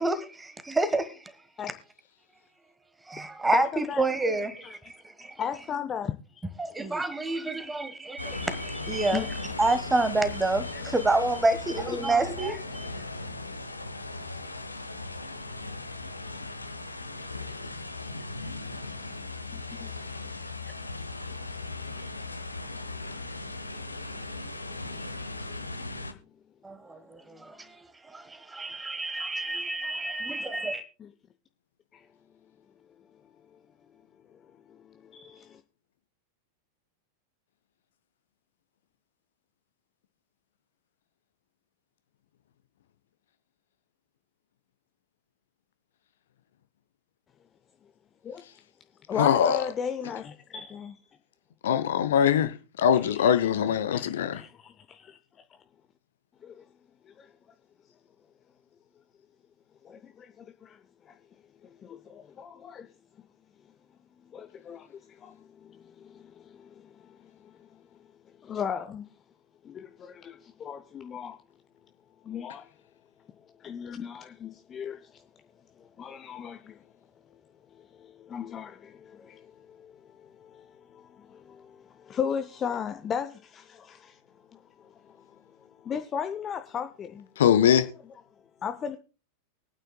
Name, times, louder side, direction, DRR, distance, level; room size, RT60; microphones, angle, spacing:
voice 1, 0.0-1.3 3.1-5.3 6.6-12.9 26.6-30.8, right 2 dB, 10° right, 1.3 m, -29 dB
voice 2, 3.5-4.1 4.6-4.8 5.4-6.4 9.1-9.3 10.7-10.8 19.5-19.9 24.1-24.2 24.8-25.0 25.4-25.5 25.9-26.0 31.9-32.1 33.5-33.6 34.3-34.4 34.7-35.6 48.2-48.4 49.1-51.0 53.1-53.3 53.9-55.2 56.4-56.6 57.1-57.3 59.8-61.2 61.6-62.9 64.3-67.8 68.4-69.0 69.6-71.4 72.2-72.7 73.4-75.2 75.8-76.8 77.7-84.2 84.5-87.3 88.6-89.0, left 7 dB, 25° left, 0.6 m, -37 dB
sound 1, 8.2-26.1, left 2 dB, 85° left, 0.9 m, -37 dB
voice 3, 49.2-49.6 51.6-54.4 87.4-87.9, left 9 dB, 60° left, 0.8 m, -22 dB
23.5 x 9.1 x 2.3 m
figure-of-eight pair, 90°, 0 cm